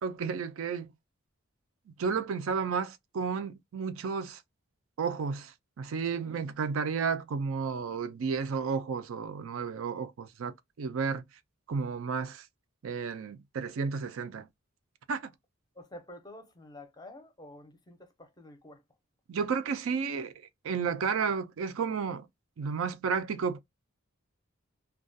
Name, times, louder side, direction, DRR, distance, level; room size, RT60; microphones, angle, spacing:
voice 1, 0.0-0.9 2.0-4.4 5.0-11.2 11.7-12.5 12.8-14.5 15.1-15.3 19.3-22.3 22.6-23.6, right 5 dB, 75° right, 0.4 m, -32 dB
voice 2, 15.7-18.8, left 1 dB, 20° left, 0.5 m, -49 dB
2.3 x 2.2 x 2.6 m
head